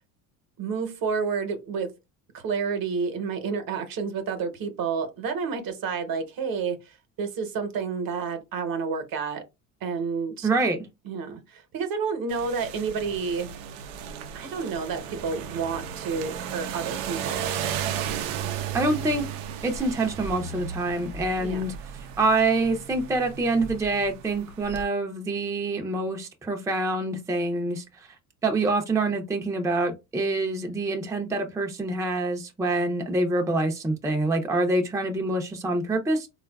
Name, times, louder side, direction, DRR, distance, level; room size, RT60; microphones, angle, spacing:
voice 1, 0.6-1.9 2.3-9.4 9.8-10.5 11.0-13.5 14.3-17.6 21.3-21.6, right 5 dB, 55° right, 1.0 m, -30 dB
voice 2, 10.4-10.8 18.7-19.2 19.6-21.7 22.2-27.8 28.4-36.3, right 2 dB, 10° right, 0.5 m, -26 dB
sound 1, 12.3-24.8, right 8 dB, 90° right, 0.6 m, -35 dB
3.6 x 2.4 x 2.2 m
supercardioid pair, 75°, 42 cm